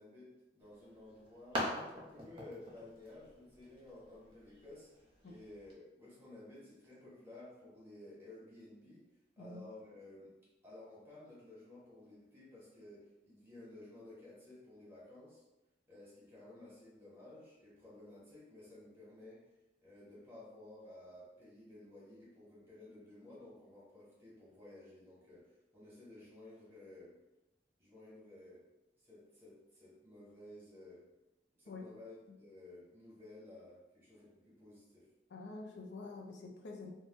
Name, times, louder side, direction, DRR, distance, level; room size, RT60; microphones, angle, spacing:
voice 1, 0.0-9.0 9.4-10.3 10.6-15.4 15.9-19.5 19.8-27.1 27.8-28.6 29.0-31.0 31.6-35.1, left 2 dB, 15° right, -7 dB, 1.2 m, -55 dB
sound 1, 0.6-5.7, equal, 30° right, 0.9 m, -45 dB
voice 2, 35.3-36.9, left 3 dB, 75° left, 0 dB, 0.4 m, -47 dB
3.0 x 2.2 x 2.9 m, 0.97 s
head